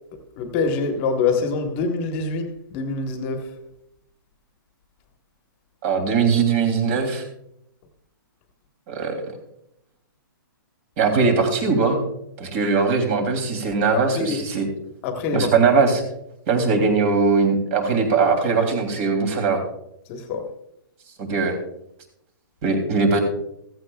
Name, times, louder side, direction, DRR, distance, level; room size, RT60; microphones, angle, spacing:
voice 1, 0.4-3.5 13.9-14.4 15.0-15.5 20.1-20.5, left 4 dB, 30° left, 1.4 m, -25 dB
voice 2, 5.8-7.2 8.9-9.2 11.0-12.0 12.4-14.7 15.3-16.0 16.5-19.6 21.2-21.6 22.6-23.2, right 4 dB, 35° right, 3.0 m, -20 dB
15.5 x 15.0 x 2.4 m
hypercardioid pair, 155°, 12 cm